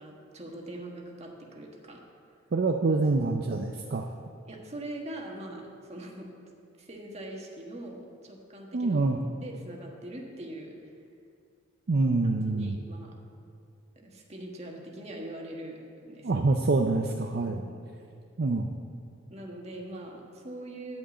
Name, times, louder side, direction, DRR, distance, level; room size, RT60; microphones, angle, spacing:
voice 1, 0.0-2.0 4.5-6.3 6.8-10.9 12.5-13.1 13.9-16.4 17.5-17.8 19.3-21.0, right 1 dB, 35° right, 0 dB, 1.5 m, -42 dB
voice 2, 2.5-4.1 8.7-9.2 11.9-12.8 16.2-17.6 18.4-18.7, right 3 dB, 50° right, 3 dB, 0.5 m, -26 dB
11.5 x 5.3 x 8.2 m, 2.4 s
head